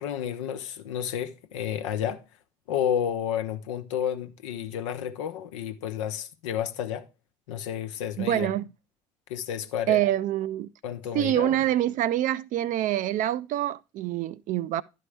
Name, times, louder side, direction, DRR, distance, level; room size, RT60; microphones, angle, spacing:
voice 1, 0.0-2.2 2.7-7.1 7.5-8.5 9.3-10.0 10.8-11.6, left 9 dB, 75° left, 0.8 m, -31 dB
voice 2, 8.2-8.7 9.9-10.7 11.1-14.8, right 13 dB, 55° right, 0.5 m, -26 dB
11.5 x 4.6 x 3.2 m
figure-of-eight pair, 50°, 16 cm